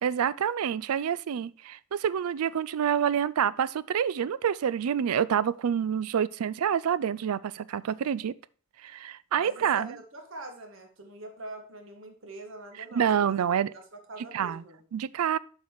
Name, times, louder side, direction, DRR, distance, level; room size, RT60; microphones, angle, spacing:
voice 1, 0.0-8.3 8.8-10.0 12.9-13.7 14.3-14.6 14.9-15.4, right 8 dB, 85° right, 0.4 m, -27 dB
voice 2, 9.3-13.4 13.7-14.8, right 2 dB, 60° right, 1.7 m, -44 dB
7.3 x 5.6 x 4.8 m
head